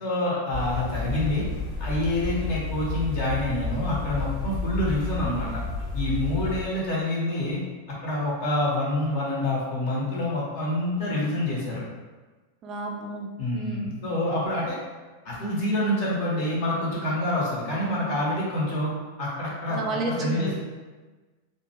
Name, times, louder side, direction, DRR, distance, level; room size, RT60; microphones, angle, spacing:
voice 1, 0.0-1.4 1.8-5.6 5.9-7.6 7.9-11.8 13.4-14.8 15.2-18.9 19.2-19.8 20.2-20.5, left 1 dB, 45° left, -5 dB, 0.9 m, -27 dB
sound 1, 0.5-6.6, left 3 dB, 20° left, 0.9 m, -31 dB
voice 2, 12.6-13.9 19.7-20.5, right 2 dB, 30° right, 0 dB, 0.3 m, -31 dB
2.4 x 2.1 x 2.9 m, 1.3 s
figure-of-eight pair, 90°, 0 cm